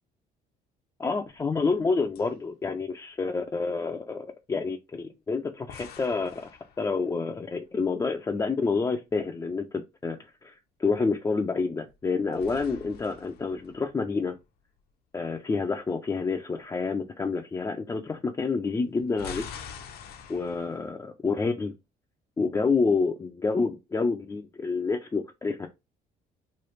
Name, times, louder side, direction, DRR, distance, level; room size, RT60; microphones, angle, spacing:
voice 1, 1.0-6.5 6.8-10.5 10.8-14.4 15.1-19.5 20.3-21.7 22.4-25.7, left 4 dB, 20° left, 0.4 m, -28 dB
sound 1, 1.3-1.9 2.1-2.3 5.7-7.4 11.9-14.4 18.9-20.9, left 6 dB, 70° left, 0.6 m, -45 dB
3.1 x 2.3 x 3.1 m
cardioid pair, 110°, 17 cm